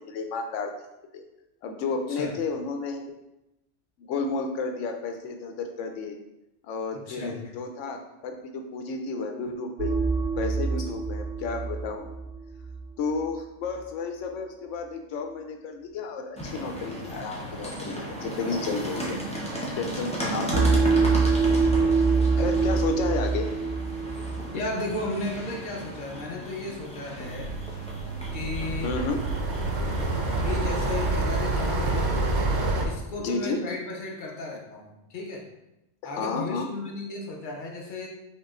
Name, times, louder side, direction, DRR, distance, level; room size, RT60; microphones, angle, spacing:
voice 1, 0.1-0.7 1.1-1.2 1.6-3.0 4.0-6.2 6.6-10.0 10.4-12.1 13.0-19.2 19.8-21.1 22.4-23.5 28.8-29.2 33.2-33.7 36.2-36.7, left 4 dB, 80° left, 5 dB, 0.9 m, -32 dB
voice 2, 6.9-7.4 10.8-10.9 24.5-27.6 28.3-29.0 30.3-32.2 32.8-35.5 36.0-38.1, left 2 dB, 50° left, 0 dB, 0.8 m, -34 dB
sound 1, 9.8-12.9 20.5-24.5, right 4 dB, 85° right, 1.0 m, -24 dB
sound 2, 16.4-31.1, equal, 10° left, 0.5 m, -35 dB
sound 3, 27.2-32.9, right 2 dB, 50° right, 0.6 m, -27 dB
5.6 x 3.0 x 2.4 m, 0.91 s
omnidirectional pair, 1.2 m